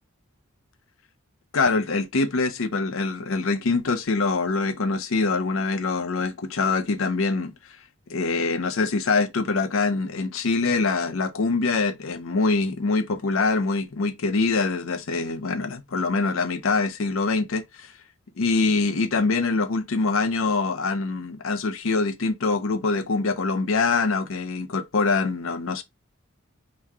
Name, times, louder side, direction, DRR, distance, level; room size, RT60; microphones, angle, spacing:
voice 1, 1.5-7.8 8.1-17.9 18.4-25.8, left 3 dB, 75° left, 0.6 m, -24 dB
3.6 x 3.1 x 4.6 m
head